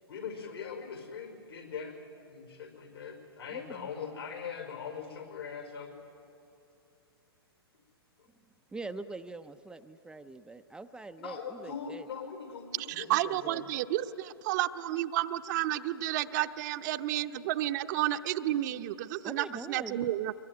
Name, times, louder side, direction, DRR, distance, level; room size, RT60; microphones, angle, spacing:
voice 1, 0.1-2.0 2.3-5.9 11.2-13.1, left 6 dB, 75° left, 4 dB, 5.5 m, -41 dB
voice 2, 3.5-3.9 8.7-12.1 13.1-13.6 19.2-20.1, right 3 dB, 5° right, 8 dB, 0.6 m, -43 dB
voice 3, 12.8-20.3, right 14 dB, 45° right, 10 dB, 0.8 m, -31 dB
24.5 x 22.0 x 9.5 m, 2.7 s
hypercardioid pair, 120°, 13 cm